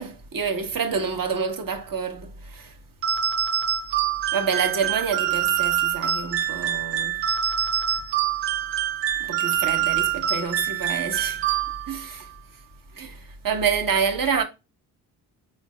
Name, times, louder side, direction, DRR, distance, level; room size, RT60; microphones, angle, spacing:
voice 1, 0.0-2.7 4.3-7.3 9.2-11.5 11.9-12.3 12.9-14.4, right 6 dB, 45° right, 1.1 m, -27 dB
sound 1, 3.0-12.1, right 10 dB, 70° right, 0.9 m, -25 dB
4.3 x 3.8 x 2.2 m
hypercardioid pair, 45°, 46 cm